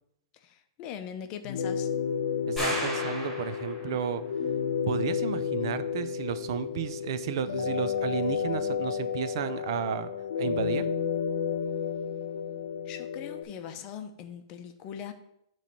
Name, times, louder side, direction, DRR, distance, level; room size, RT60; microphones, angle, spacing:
voice 1, 0.3-1.9 12.8-15.1, left 8 dB, 35° left, 8 dB, 0.6 m, -41 dB
sound 1, 1.4-13.4, left 7 dB, 75° left, 0.8 m, -31 dB
voice 2, 2.5-4.2 4.9-10.1 10.4-10.9, right 8 dB, 60° right, 12 dB, 0.5 m, -32 dB
sound 2, 2.6-4.0, right 1 dB, ahead, 2.6 m, -34 dB
6.7 x 3.2 x 5.9 m, 0.78 s
hypercardioid pair, 150°, 3 cm